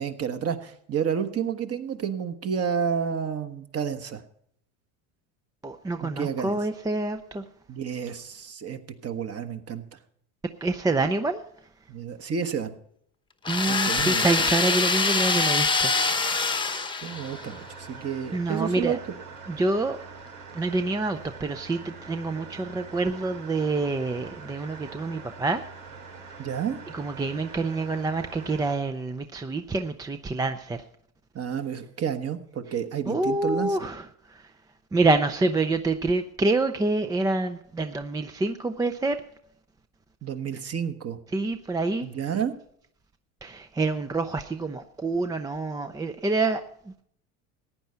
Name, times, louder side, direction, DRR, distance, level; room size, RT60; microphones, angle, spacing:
voice 1, 0.0-4.2 6.0-6.6 7.7-10.0 11.9-12.7 13.7-14.5 17.0-19.0 26.4-26.8 31.3-33.8 40.2-41.2 42.0-42.5, right 7 dB, 35° right, 9 dB, 1.3 m, -30 dB
voice 2, 5.6-7.4 10.6-11.4 13.5-16.5 18.3-19.0 19.5-20.0 20.5-25.6 26.9-30.8 33.1-34.0 34.3-34.4 34.9-39.2 41.3-42.1 43.4-47.0, right 3 dB, 10° right, 8 dB, 0.4 m, -27 dB
sound 1, 13.4-17.6, left 4 dB, 10° left, 0.9 m, -24 dB
sound 2, 17.1-28.7, right 5 dB, 85° right, 2.6 m, -44 dB
15.0 x 9.5 x 5.6 m, 0.68 s
supercardioid pair, 100°, 43 cm